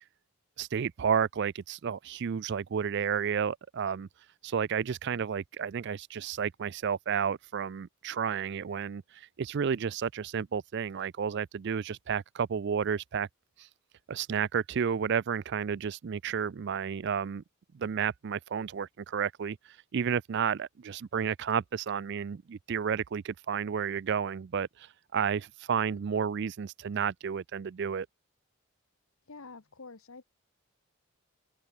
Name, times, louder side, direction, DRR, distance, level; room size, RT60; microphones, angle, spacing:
voice 1, 0.6-4.1 4.4-13.3 13.6-13.7 14.1-17.4 17.7-19.6 19.9-28.1, right 7 dB, 50° right, 0.4 m, -31 dB
voice 2, 29.3-30.2, left 3 dB, 65° left, 1.2 m, -47 dB
open air
head